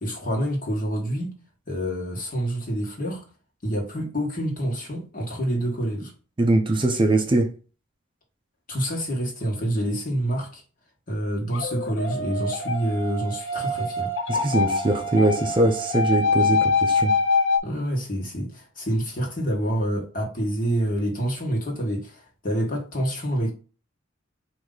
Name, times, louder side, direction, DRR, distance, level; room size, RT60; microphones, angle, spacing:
voice 1, 0.0-1.4 1.7-3.2 3.6-6.1 8.7-10.6 11.1-14.1 16.5-16.7 17.6-23.5, right 1 dB, 45° left, 1.4 m, -27 dB
voice 2, 6.4-7.5 14.3-17.2, right 2 dB, 25° right, 0.5 m, -22 dB
sound 1, 11.5-17.6, left 3 dB, 75° left, 0.6 m, -24 dB
4.7 x 2.6 x 3.8 m
head